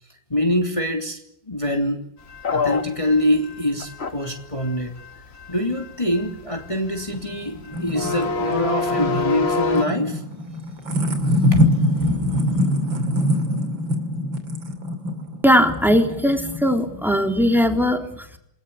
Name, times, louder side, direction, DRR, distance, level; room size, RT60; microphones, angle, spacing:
voice 1, 0.3-1.2 1.5-2.0 2.5-5.0 5.5-10.2 10.5-10.9 11.5-12.3, left 1 dB, 15° left, 3 dB, 3.0 m, -24 dB
sound 1, 2.3-9.8, left 3 dB, 35° left, 1.6 m, -27 dB
sound 2, 7.1-17.2, left 1 dB, 85° right, 3.6 m, -24 dB
voice 2, 15.4-18.4, equal, ahead, 4 dB, 3.6 m, -19 dB
29.0 x 19.5 x 8.5 m, 0.74 s
omnidirectional pair, 2.0 m